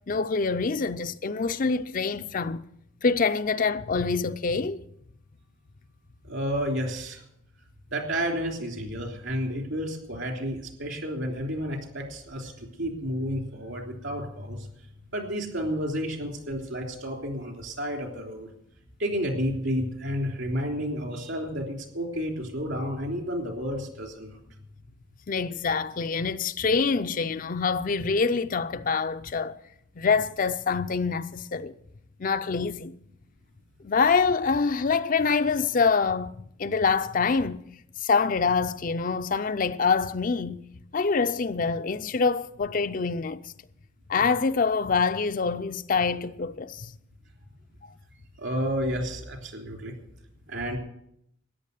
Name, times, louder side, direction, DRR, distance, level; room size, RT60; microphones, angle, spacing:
voice 1, 0.1-2.7 3.0-4.8 25.3-29.6 30.0-31.7 32.2-32.9 33.8-36.3 36.6-37.6 38.0-40.6 40.9-43.4 44.1-46.9, left 5 dB, 45° left, 0.5 m, -25 dB
voice 2, 6.2-7.2 7.9-14.7 15.1-18.5 19.0-24.4 48.4-50.0 50.5-50.8, equal, 65° right, 3.3 m, -31 dB
14.0 x 9.9 x 6.6 m
head